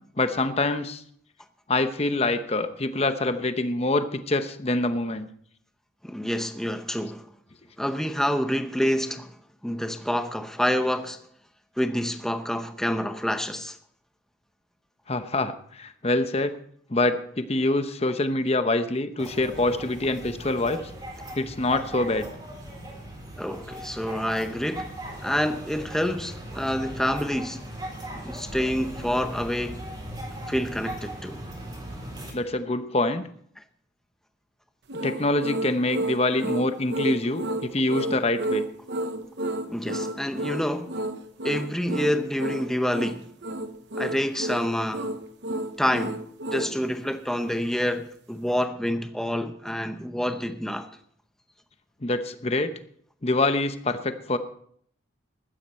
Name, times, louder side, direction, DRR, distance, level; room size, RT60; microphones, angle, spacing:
voice 1, 0.2-1.0 1.7-5.3 15.1-16.5 16.9-20.8 21.4-22.3 32.3-33.2 35.0-38.6 52.0-52.7 53.2-54.4, left 2 dB, 30° left, 0.9 m, -25 dB
voice 2, 6.0-7.3 7.8-9.4 9.6-11.2 11.8-13.8 23.4-24.9 25.2-27.6 28.1-29.9 30.5-31.4 33.6-33.7 39.7-41.0 41.4-43.3 44.0-45.1 45.8-50.9, equal, ahead, 0.7 m, -27 dB
sound 1, 19.2-32.3, right 1 dB, 20° right, 3.8 m, -38 dB
sound 2, 34.9-46.8, right 1 dB, 60° right, 1.0 m, -31 dB
15.0 x 12.5 x 4.4 m
head